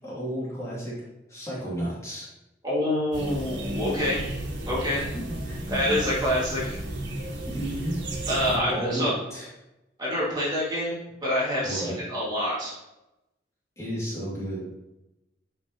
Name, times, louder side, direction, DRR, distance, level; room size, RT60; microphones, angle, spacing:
voice 1, 0.0-0.9 1.3-2.3 3.9-4.1 5.0-5.6 7.5-7.9 8.4-9.5 11.6-12.0 13.8-14.6, right 1 dB, 15° left, -8 dB, 2.7 m, -32 dB
voice 2, 2.6-4.3 4.7-5.0 5.7-6.8 8.3-9.1 10.0-12.8, equal, 25° right, -7 dB, 2.3 m, -27 dB
sound 1, 3.1-8.6, right 1 dB, 90° right, 1.6 m, -33 dB
8.9 x 5.4 x 3.0 m, 0.94 s
head